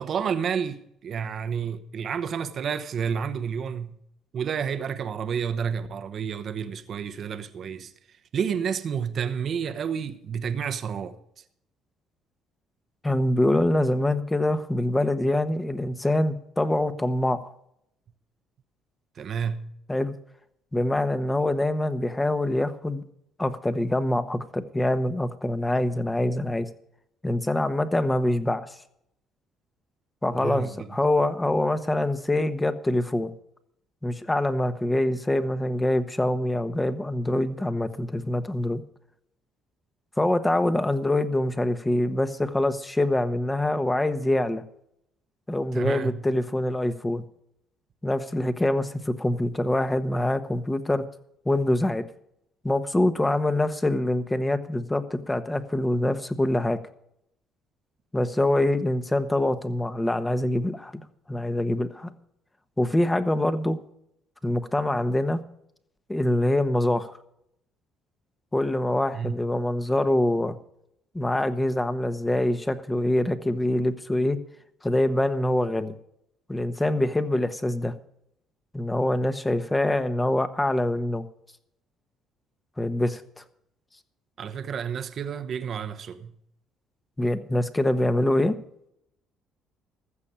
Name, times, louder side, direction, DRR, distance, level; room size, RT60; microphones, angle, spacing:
voice 1, 0.0-4.0 4.3-11.2 19.2-19.7 30.3-30.9 45.7-46.2 69.1-69.4 84.4-86.3, right 7 dB, 55° right, 0.9 m, -30 dB
voice 2, 13.0-17.5 19.9-20.2 20.7-23.0 23.4-26.7 27.2-28.7 30.2-33.3 34.0-38.8 40.2-44.6 45.5-47.2 48.0-51.0 51.4-52.0 52.6-56.8 58.1-62.1 62.8-63.8 64.4-65.4 66.1-67.1 68.5-70.5 71.1-74.4 74.8-75.9 76.5-77.9 78.7-81.2 82.8-83.4 87.2-88.5, left 1 dB, 15° left, 1.2 m, -25 dB
14.5 x 6.7 x 8.7 m
supercardioid pair, 80°, 0 cm